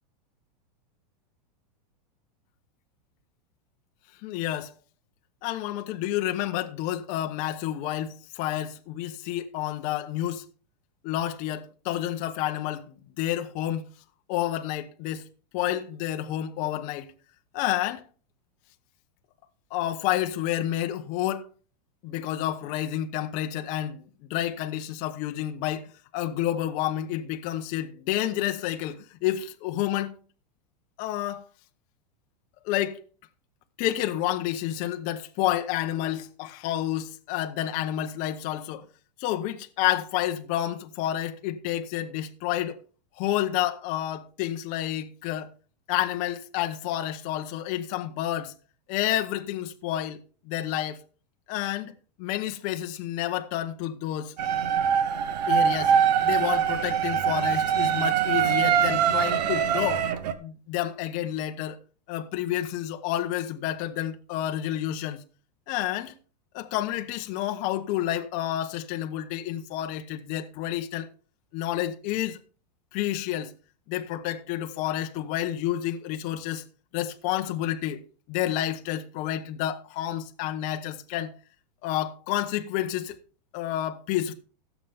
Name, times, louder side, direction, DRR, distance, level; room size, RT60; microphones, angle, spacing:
voice 1, 4.2-4.7 5.4-10.4 11.0-13.9 14.3-15.2 15.5-17.1 17.5-18.0 19.7-21.5 22.0-25.9 26.1-30.2 31.0-31.4 32.6-33.0 33.8-38.8 39.2-42.8 43.2-45.5 45.9-48.5 48.9-51.0 51.5-54.3 55.5-55.9 56.2-60.0 60.4-61.8 62.1-65.2 65.7-66.1 66.5-71.1 71.5-72.4 72.9-73.5 73.9-76.6 76.9-78.0 78.3-81.4 81.8-83.2 83.5-84.3, left 12 dB, 40° left, 1.0 m, -29 dB
sound 1, 54.4-60.3, right 8 dB, 75° right, 1.1 m, -23 dB
16.0 x 7.4 x 3.5 m
supercardioid pair, 150°, 21 cm